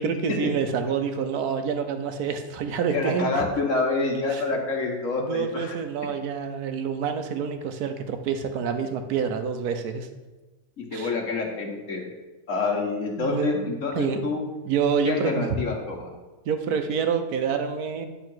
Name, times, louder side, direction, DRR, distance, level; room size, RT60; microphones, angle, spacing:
voice 1, 0.0-3.5 4.3-4.4 5.2-10.1 10.9-11.1 13.2-13.6 13.9-14.3 14.7-15.5 16.5-18.1, right 6 dB, 80° right, 7 dB, 1.3 m, -27 dB
voice 2, 2.9-5.8 10.8-12.1 12.5-14.5 15.0-16.1, left 3 dB, 55° left, 1 dB, 1.7 m, -27 dB
10.5 x 3.8 x 6.1 m, 1.2 s
omnidirectional pair, 1.6 m